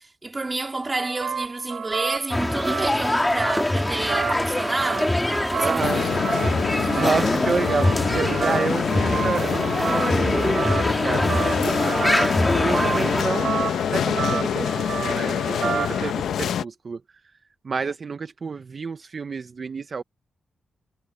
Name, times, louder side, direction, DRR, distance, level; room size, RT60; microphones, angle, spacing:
voice 1, 0.0-5.2 5.5-6.2 6.8-7.3, right 2 dB, 20° right, 2.9 m, -30 dB
sound 1, 0.8-16.1, right 6 dB, 55° right, 2.1 m, -31 dB
sound 2, 2.3-13.2, left 1 dB, 10° left, 1.8 m, -24 dB
voice 2, 5.6-6.1 6.9-10.7 11.0-12.0 12.6-13.6 13.9-17.0 17.6-20.0, right 5 dB, 35° right, 0.5 m, -29 dB
sound 3, 5.8-16.6, left 9 dB, 85° left, 0.7 m, -26 dB
wide cardioid pair, 175°, 0 cm